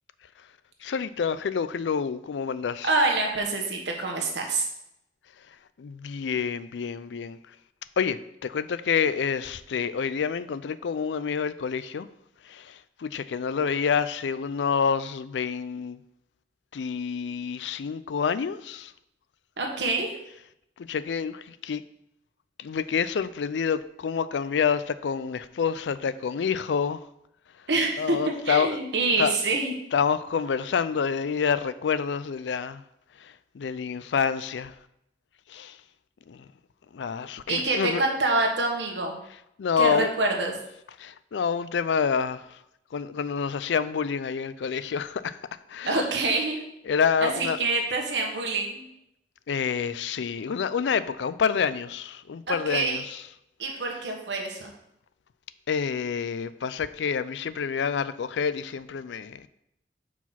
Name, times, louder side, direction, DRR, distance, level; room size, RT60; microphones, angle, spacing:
voice 1, 0.8-2.9 5.4-7.6 8.0-12.1 12.4-16.0 16.7-18.9 20.8-21.8 22.6-27.1 27.5-27.7 28.0-28.8 29.2-29.4 29.9-32.8 33.1-34.8 35.5-35.8 36.3-36.5 36.9-38.0 39.6-40.1 41.0-42.6 42.9-46.0 46.9-47.6 49.5-53.2 55.7-59.5, left 6 dB, 90° left, 0.4 m, -28 dB
voice 2, 2.8-4.7 19.6-20.2 27.7-29.7 37.5-39.2 39.8-40.5 45.9-46.6 47.2-48.8 52.5-53.0 53.6-54.7, right 3 dB, 85° right, 1.3 m, -26 dB
6.0 x 4.8 x 5.7 m
head